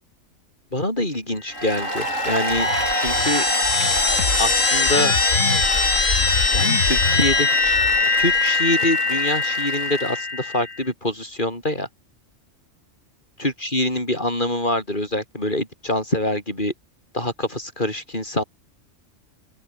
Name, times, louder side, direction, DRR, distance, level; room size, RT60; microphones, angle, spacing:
voice 1, 0.7-3.5 4.4-5.2 6.5-7.8 8.2-11.9 13.4-16.7 17.1-18.4, left 1 dB, 40° left, 8.2 m, -25 dB
sound 1, 1.5-10.8, left 4 dB, 70° left, 2.9 m, -21 dB
Applause, 1.5-10.2, right 2 dB, 80° right, 6.4 m, -29 dB
open air
omnidirectional pair, 1.3 m